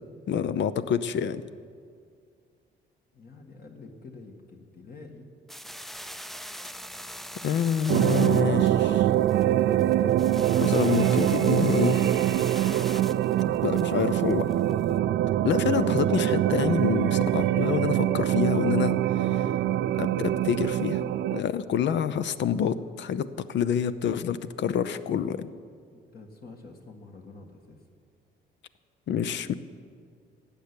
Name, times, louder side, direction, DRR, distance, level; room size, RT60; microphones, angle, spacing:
voice 1, 0.3-1.4 7.4-9.1 10.5-12.1 13.6-14.5 15.4-19.5 20.0-21.0 21.3-25.5 29.1-29.5, left 8 dB, 65° left, 13 dB, 0.7 m, -27 dB
voice 2, 3.1-5.3 25.9-27.8, left 3 dB, 50° left, 2 dB, 1.7 m, -47 dB
sound 1, 5.5-14.9, equal, ahead, 0.5 m, -42 dB
sound 2, 7.9-21.4, right 12 dB, 65° right, 0.4 m, -24 dB
15.5 x 6.9 x 9.7 m, 2.2 s
cardioid pair, 90°, 20 cm